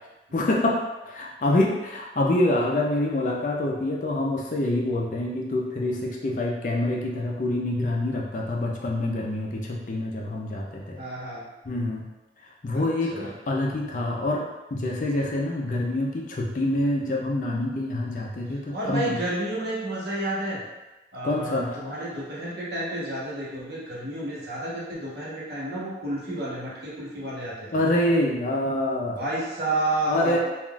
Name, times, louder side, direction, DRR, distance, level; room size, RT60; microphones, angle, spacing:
voice 1, 0.3-11.0 11.6-12.1 12.6-19.2 21.2-21.8 27.7-29.2 30.1-30.4, left 1 dB, 45° left, -1 dB, 0.4 m, -26 dB
voice 2, 11.0-11.5 12.7-12.8 13.1-13.3 18.7-20.6 21.1-27.8 29.1-30.4, right 1 dB, 65° right, -7 dB, 0.9 m, -30 dB
3.5 x 2.4 x 2.3 m, 1.1 s
head